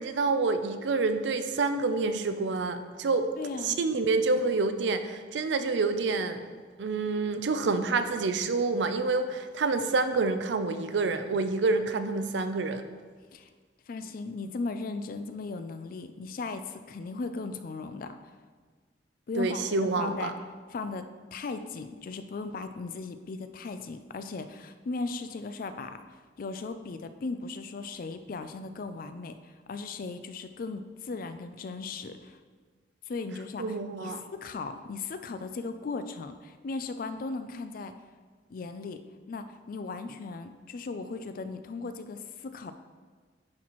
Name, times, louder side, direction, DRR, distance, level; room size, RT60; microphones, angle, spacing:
voice 1, 0.0-3.3 3.6-6.4 6.8-12.8 19.4-20.3 33.6-34.2, right 3 dB, 75° right, 9 dB, 0.5 m, -28 dB
voice 2, 3.4-3.8 13.3-13.5 13.9-18.2 19.3-20.3 20.7-26.0 26.4-32.4 33.1-33.7 34.0-37.9 38.5-39.0 39.3-42.7, left 3 dB, 50° left, 9 dB, 0.4 m, -37 dB
10.5 x 4.1 x 3.0 m, 1.5 s
head